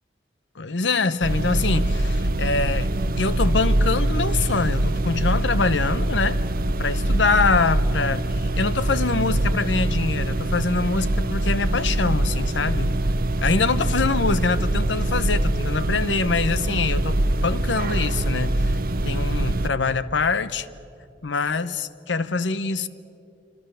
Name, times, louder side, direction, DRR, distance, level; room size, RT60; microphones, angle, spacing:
voice 1, 0.6-2.9 3.2-6.4 6.8-12.9 13.4-17.2 17.4-18.7 19.0-20.7 21.2-22.9, left 4 dB, 80° left, 15 dB, 0.9 m, -24 dB
sound 1, 1.2-19.7, right 1 dB, 55° right, 0.9 m, -23 dB
26.0 x 25.5 x 6.9 m, 2.7 s
head